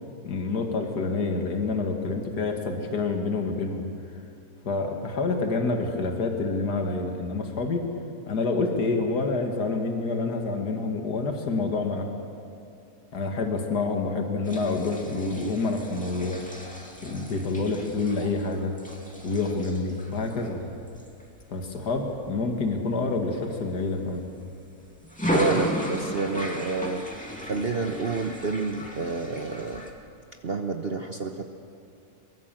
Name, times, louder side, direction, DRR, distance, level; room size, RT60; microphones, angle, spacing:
voice 1, 0.2-3.8 4.6-7.8 8.3-12.1 13.1-16.4 17.0-18.7 19.2-20.7 21.5-24.2, left 3 dB, 80° left, 3 dB, 2.5 m, -27 dB
sound 1, 14.4-22.3 22.8-23.0 23.4-24.5 25.0-29.9, equal, 5° left, 2.4 m, -35 dB
voice 2, 25.3-27.0 27.4-29.8 30.4-31.4, right 3 dB, 40° right, 4 dB, 1.1 m, -29 dB
23.0 x 23.0 x 7.6 m, 2.5 s
omnidirectional pair, 1.7 m